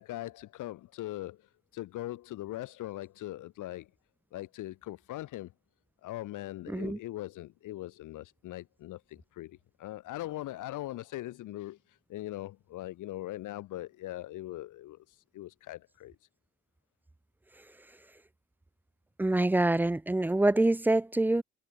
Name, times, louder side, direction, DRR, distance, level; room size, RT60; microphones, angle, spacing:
voice 1, 0.0-3.9 4.3-5.5 6.0-16.1, left 15 dB, 85° left, 2.7 m, -41 dB
voice 2, 6.7-7.0 19.2-21.4, right 2 dB, 5° right, 0.4 m, -25 dB
cardioid pair, 90°, 30 cm